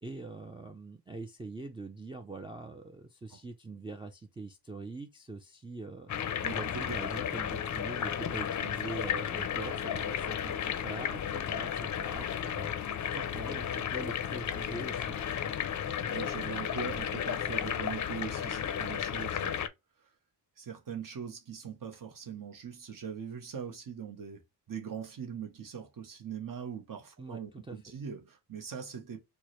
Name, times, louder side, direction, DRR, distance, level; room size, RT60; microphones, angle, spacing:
voice 1, 0.0-6.1 6.5-12.7 13.1-15.2 27.2-27.8, right 3 dB, 15° right, 0.3 m, -43 dB
sound 1, 6.1-19.7, left 9 dB, 45° left, 0.5 m, -33 dB
voice 2, 6.4-6.8 16.1-19.6 20.6-24.4 24.7-29.2, right 7 dB, 55° right, 0.9 m, -41 dB
4.5 x 2.1 x 3.0 m
wide cardioid pair, 125°, 40 cm